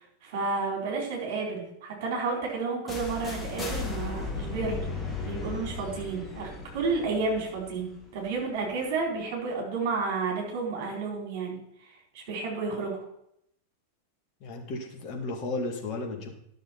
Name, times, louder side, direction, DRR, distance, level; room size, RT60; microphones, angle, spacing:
voice 1, 0.0-4.8 5.2-11.6 12.1-13.0, right 4 dB, 50° right, -1 dB, 4.0 m, -31 dB
sound 1, 2.9-8.7, left 4 dB, 15° left, 1.9 m, -36 dB
voice 2, 14.4-16.3, left 2 dB, 40° left, 1 dB, 2.2 m, -34 dB
11.5 x 6.5 x 4.4 m, 0.74 s
figure-of-eight pair, 90°, 0 cm